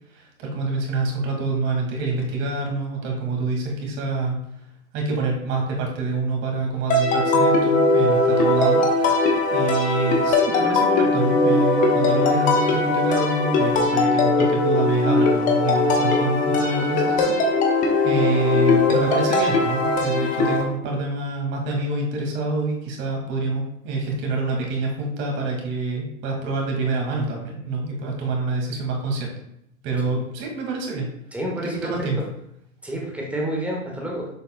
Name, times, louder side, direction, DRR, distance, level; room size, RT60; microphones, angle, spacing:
voice 1, 0.1-4.4 4.9-8.8 9.5-29.3 29.8-31.1 31.6-32.2, right 3 dB, 30° right, 0 dB, 2.0 m, -26 dB
sound 1, 6.9-20.6, left 2 dB, 20° left, 1.1 m, -20 dB
voice 2, 31.3-32.1 32.8-34.3, right 1 dB, 5° right, -2 dB, 1.3 m, -29 dB
7.6 x 7.1 x 2.2 m, 0.77 s
figure-of-eight pair, 105°, 39 cm